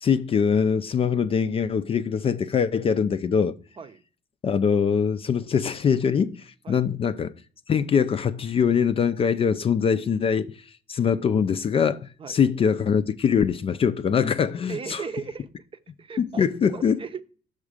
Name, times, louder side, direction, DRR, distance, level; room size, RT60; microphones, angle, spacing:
voice 1, 0.0-3.6 4.4-7.3 7.7-10.5 10.9-15.0 16.2-17.0, left 7 dB, 35° left, 0.4 m, -23 dB
voice 2, 14.7-16.4 16.7-17.2, right 5 dB, 30° right, 0.7 m, -37 dB
6.4 x 4.8 x 4.9 m
cardioid pair, 110°, 17 cm